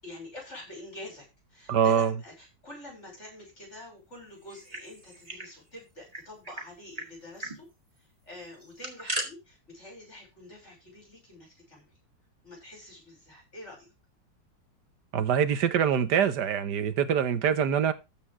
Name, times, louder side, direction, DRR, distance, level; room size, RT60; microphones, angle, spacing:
voice 1, 0.0-1.2 1.5-7.7 8.0-11.9 12.4-13.9, left 1 dB, 40° left, 6.6 m, -46 dB
voice 2, 1.7-2.1 15.1-17.9, right 8 dB, 70° right, 1.7 m, -24 dB
sound 1, 4.4-5.5 5.8-5.9 6.1-6.7 7.0-7.1 7.4-7.6 8.5-9.3, right 1 dB, 20° right, 2.7 m, -36 dB
14.0 x 5.2 x 4.9 m
omnidirectional pair, 1.9 m